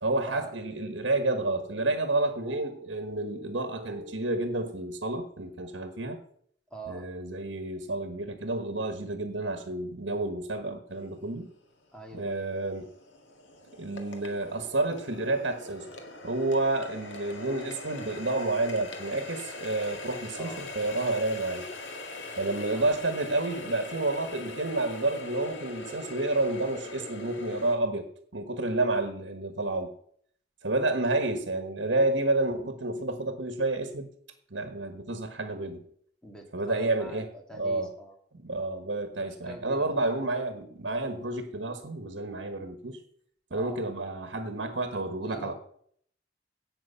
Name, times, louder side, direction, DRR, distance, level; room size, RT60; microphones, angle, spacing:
voice 1, 0.0-6.2 6.9-11.5 12.1-12.9 13.8-15.9 16.2-21.7 22.4-28.0 28.3-29.9 30.6-34.1 34.5-35.8 36.5-37.3 37.5-37.9 38.4-43.0 43.5-45.5, right 2 dB, 80° right, 7 dB, 1.3 m, -30 dB
voice 2, 6.7-7.1 11.9-12.5 20.4-20.7 22.7-23.0 36.2-38.1 39.2-40.1 43.5-43.9 45.2-45.5, right 1 dB, 5° left, 1 dB, 2.2 m, -44 dB
Water tap faucet, 11.3-11.4 11.9-27.8, left 2 dB, 90° left, 2.0 m, -42 dB
16.5 x 6.2 x 5.7 m, 0.64 s
head